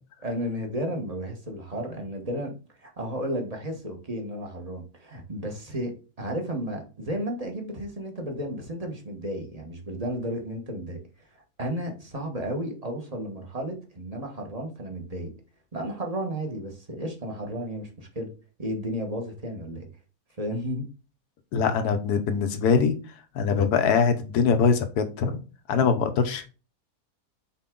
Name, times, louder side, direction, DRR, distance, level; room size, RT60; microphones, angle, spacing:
voice 1, 0.2-2.5 2.8-5.9 6.2-11.0 11.6-15.3 15.7-18.3 18.6-19.9 20.4-20.8, equal, 25° right, 2 dB, 1.4 m, -33 dB
voice 2, 21.5-22.9 23.3-25.4 25.7-26.5, left 6 dB, 80° left, 8 dB, 1.4 m, -22 dB
5.8 x 4.6 x 3.8 m, 0.34 s
omnidirectional pair, 1.7 m